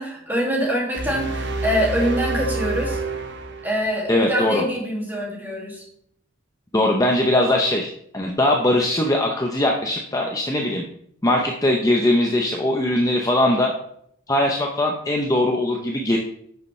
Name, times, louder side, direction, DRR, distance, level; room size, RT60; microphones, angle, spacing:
voice 1, 0.0-3.0 3.6-5.8, equal, 10° right, -3 dB, 2.3 m, -24 dB
sound 1, 0.9-4.1, right 3 dB, 50° right, 0.8 m, -28 dB
voice 2, 4.1-4.6 6.7-10.8 11.2-13.7 14.3-16.2, left 1 dB, 15° left, 1 dB, 0.7 m, -20 dB
11.0 x 6.8 x 3.2 m, 0.70 s
head